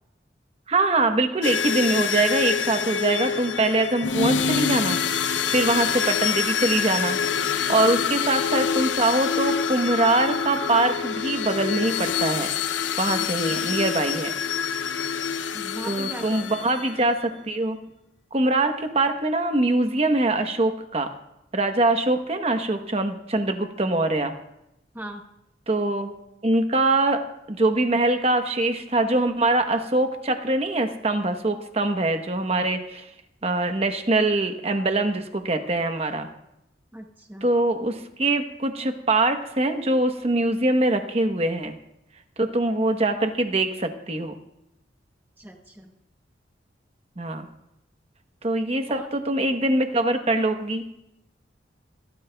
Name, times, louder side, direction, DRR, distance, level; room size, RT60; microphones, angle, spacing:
voice 1, 0.7-7.2 7.7-12.5 13.0-14.4 15.9-17.8 18.3-21.1 21.5-24.3 25.7-26.1 26.4-27.2 27.5-33.1 33.4-36.3 37.4-41.7 42.4-44.4 47.2-47.5 48.4-50.9, right 2 dB, 35° right, 7 dB, 1.0 m, -23 dB
sound 1, 1.4-17.0, left 7 dB, 85° left, 0.6 m, -26 dB
voice 2, 13.2-13.5 15.5-16.5 24.9-25.2 36.9-37.5 45.4-45.9 48.9-49.1, right 1 dB, 10° right, 2 dB, 0.9 m, -39 dB
28.0 x 13.0 x 2.3 m, 0.85 s
head